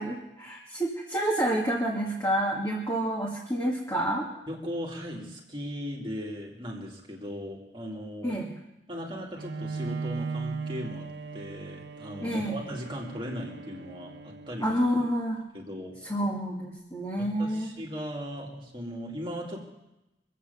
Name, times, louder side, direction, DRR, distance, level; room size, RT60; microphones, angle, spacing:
voice 1, 0.0-4.3 8.2-8.5 12.2-12.6 14.6-15.4 16.1-17.7, right 1 dB, 15° left, -5 dB, 2.3 m, -28 dB
voice 2, 4.5-8.4 8.9-11.1 11.3-14.7 15.5-16.0 17.2-19.6, equal, 30° right, -1 dB, 2.4 m, -38 dB
Bowed string instrument, 9.4-15.0, right 4 dB, 85° right, 0.9 m, -38 dB
23.5 x 8.3 x 6.9 m, 0.94 s
head